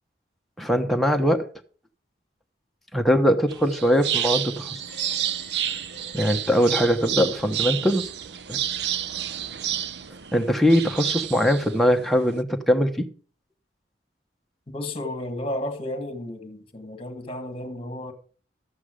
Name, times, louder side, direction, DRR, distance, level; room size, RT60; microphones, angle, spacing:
voice 1, 0.6-1.4 2.9-4.8 6.1-8.1 8.5-8.6 10.3-13.1, equal, ahead, 1.1 m, -21 dB
sound 1, 3.5-12.4, right 10 dB, 70° right, 0.7 m, -30 dB
sound 2, 4.8-7.3, right 3 dB, 50° right, 2.6 m, -46 dB
voice 2, 14.7-18.1, left 1 dB, 30° left, 1.7 m, -32 dB
12.5 x 8.2 x 5.0 m
head